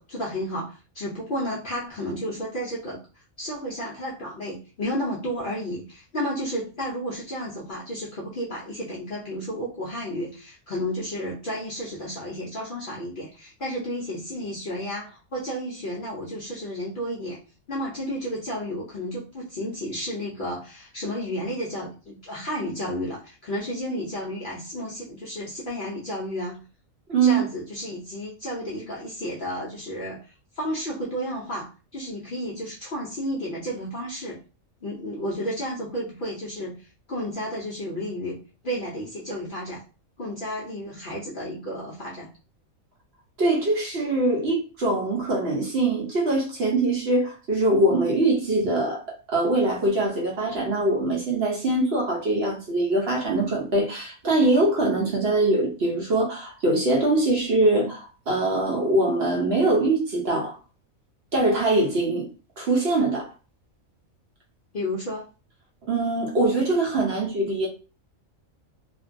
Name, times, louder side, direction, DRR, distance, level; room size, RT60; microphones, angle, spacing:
voice 1, 0.0-3.0 3.4-17.4 17.7-26.6 27.2-34.4 34.8-38.4 38.6-39.8 40.2-42.3 64.7-65.3, equal, 60° left, 0.5 m, -32 dB
voice 2, 27.1-27.4 43.4-49.0 49.3-60.6 61.3-62.3 62.6-63.3 65.9-67.7, right 2 dB, 55° right, 0.8 m, -23 dB
2.5 x 2.2 x 2.5 m
omnidirectional pair, 1.4 m